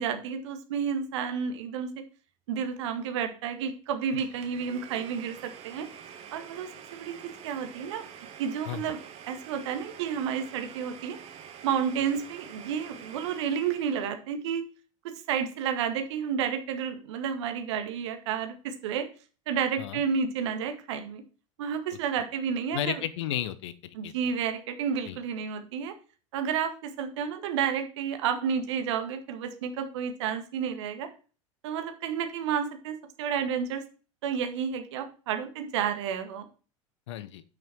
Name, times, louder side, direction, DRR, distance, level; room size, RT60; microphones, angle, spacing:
voice 1, 0.0-1.9 2.5-5.9 6.3-8.1 8.4-9.0 9.3-11.2 11.6-14.6 15.0-19.1 19.5-21.2 21.6-23.0 23.9-25.9 26.3-31.1 31.6-33.8 34.2-36.5, right 7 dB, 60° right, 7 dB, 1.8 m, -31 dB
Domestic sounds home sounds, 4.2-14.1, right 8 dB, 40° right, 1.8 m, -47 dB
voice 2, 22.7-24.3 25.1-25.2 37.1-37.4, left 11 dB, 60° left, 15 dB, 1.0 m, -33 dB
10.0 x 6.2 x 4.5 m, 0.36 s
figure-of-eight pair, 75°, 17 cm